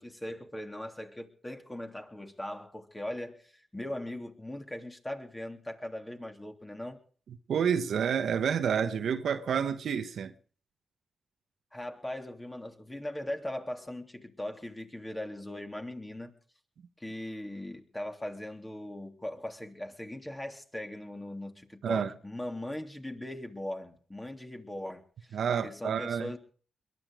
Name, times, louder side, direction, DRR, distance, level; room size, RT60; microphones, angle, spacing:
voice 1, 0.0-7.0 11.7-16.3 17.0-25.4 25.6-26.4, left 1 dB, 15° left, 3.3 m, -39 dB
voice 2, 7.5-10.3 21.8-22.1 25.3-26.3, right 7 dB, 75° right, 1.1 m, -29 dB
22.0 x 11.5 x 5.0 m
cardioid pair, 55°, 0 cm